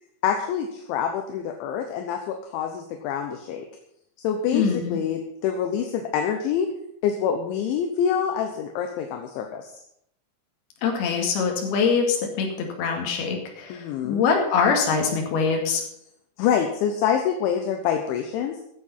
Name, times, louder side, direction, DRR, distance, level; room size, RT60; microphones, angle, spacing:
voice 1, 0.2-3.7 4.2-6.7 7.0-9.7 13.7-14.2 16.4-18.6, left 8 dB, 75° left, 5 dB, 3.1 m, -26 dB
voice 2, 4.5-5.0 10.8-15.8, left 5 dB, 55° left, 2 dB, 3.7 m, -23 dB
14.5 x 8.7 x 5.5 m, 0.73 s
omnidirectional pair, 5.9 m